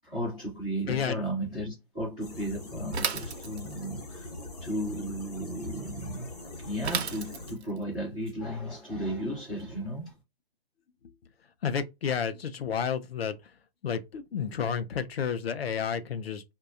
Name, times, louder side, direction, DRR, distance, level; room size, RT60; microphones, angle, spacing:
voice 1, 0.0-10.1, equal, 5° left, 0.4 m, -35 dB
voice 2, 0.9-1.2 11.0-11.1 11.6-13.6 13.8-16.4, left 7 dB, 70° left, 0.5 m, -31 dB
sound 1, 2.2-7.5, left 2 dB, 40° left, 0.8 m, -42 dB
Bicycle / Mechanisms, 2.9-3.9 6.8-7.8, right 6 dB, 85° right, 0.5 m, -33 dB
2.7 x 2.2 x 2.4 m
hypercardioid pair, 165°, 32 cm